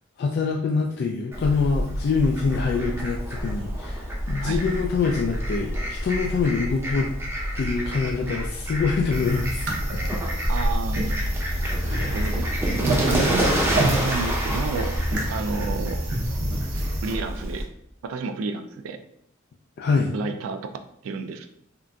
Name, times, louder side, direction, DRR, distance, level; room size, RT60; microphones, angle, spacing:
voice 1, 0.2-7.1 7.6-9.8 10.1-10.2 11.7-12.3 19.8-20.1, left 4 dB, 55° left, 1 dB, 0.3 m, -25 dB
Fowl, 1.3-17.6, equal, 15° right, 0.6 m, -28 dB
sound 1, 9.1-17.1, right 1 dB, 60° right, 0.7 m, -28 dB
voice 2, 10.5-11.3 12.1-15.0 15.3-16.0 17.0-17.7 18.0-19.0 20.1-20.7 21.0-21.5, right 4 dB, 85° right, 8 dB, 0.3 m, -30 dB
3.7 x 2.4 x 2.2 m, 0.72 s
head